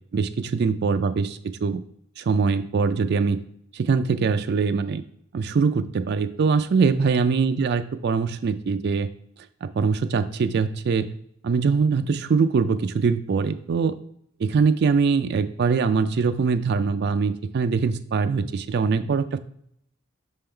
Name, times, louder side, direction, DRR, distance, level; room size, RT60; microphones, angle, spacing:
voice 1, 0.1-1.8 2.2-3.4 3.7-5.0 5.3-9.1 9.6-11.1 11.4-14.0 14.4-19.4, right 5 dB, 50° right, 11 dB, 0.3 m, -23 dB
6.1 x 3.7 x 4.4 m, 0.69 s
head